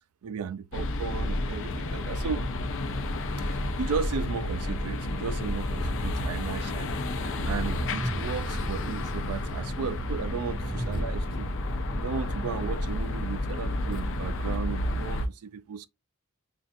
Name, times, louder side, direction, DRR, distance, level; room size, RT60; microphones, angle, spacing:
voice 1, 0.2-2.5 3.4-11.5 11.9-15.9, right 6 dB, 85° right, 0.4 m, -35 dB
sound 1, 0.7-15.2, left 1 dB, 60° left, 0.6 m, -31 dB
Train, 5.6-13.4, right 1 dB, 5° right, 0.5 m, -39 dB
5.5 x 2.4 x 2.6 m
head